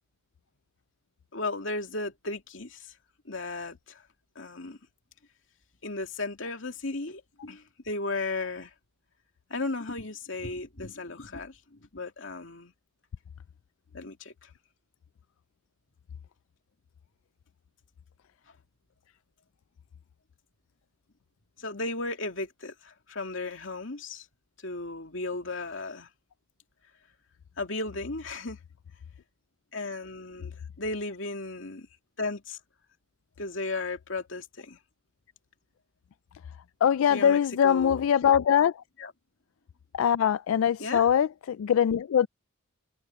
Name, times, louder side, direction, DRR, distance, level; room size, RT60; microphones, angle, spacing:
voice 1, 1.3-2.8 3.3-4.0 4.4-4.8 5.8-8.7 9.5-12.7 13.9-14.5 21.6-24.2 24.6-26.1 27.6-28.6 29.7-31.9 32.2-32.6 33.4-34.8 37.1-38.1 39.0-39.1 40.8-41.0, left 2 dB, 70° left, 2.6 m, -35 dB
voice 2, 36.8-38.7 39.9-42.3, left 8 dB, 90° left, 0.3 m, -22 dB
head